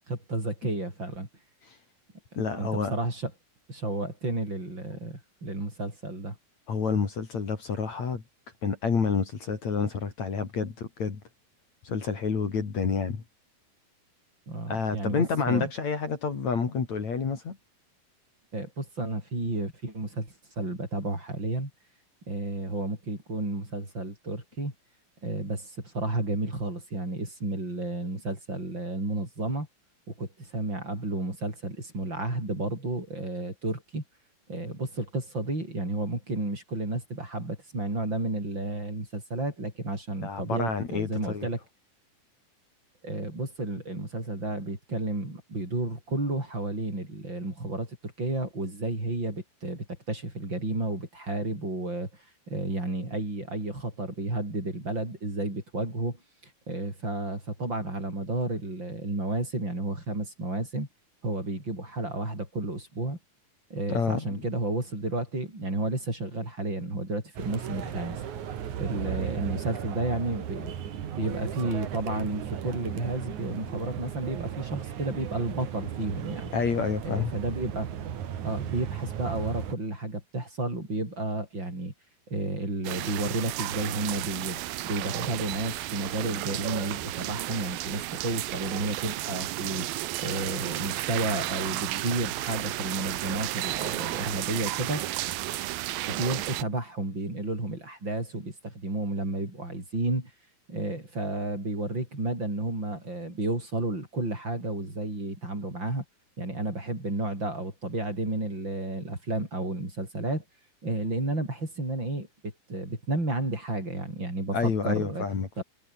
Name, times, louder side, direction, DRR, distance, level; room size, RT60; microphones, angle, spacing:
voice 1, 0.1-1.3 2.6-3.3 3.7-6.4 14.5-15.7 18.5-21.7 22.3-24.7 25.2-29.7 30.1-34.0 34.5-41.6 43.0-52.1 52.5-56.2 56.4-60.9 61.2-63.2 63.7-68.2 68.8-70.7 71.2-76.5 77.0-77.9 78.4-81.9 82.3-89.9 90.2-95.0 96.1-100.3 100.7-106.0 106.4-110.4 110.8-115.3 115.6-115.7, right 2 dB, 30° right, 8.6 m, -32 dB
voice 2, 2.4-2.9 6.7-8.2 8.6-11.2 11.8-13.2 14.7-17.6 40.2-41.5 63.9-64.4 76.5-77.3 114.5-115.6, left 5 dB, 50° left, 4.6 m, -29 dB
sound 1, 67.4-79.7, right 9 dB, 60° right, 3.2 m, -36 dB
sound 2, 82.8-96.6, right 16 dB, 90° right, 2.8 m, -33 dB
omnidirectional pair, 4.1 m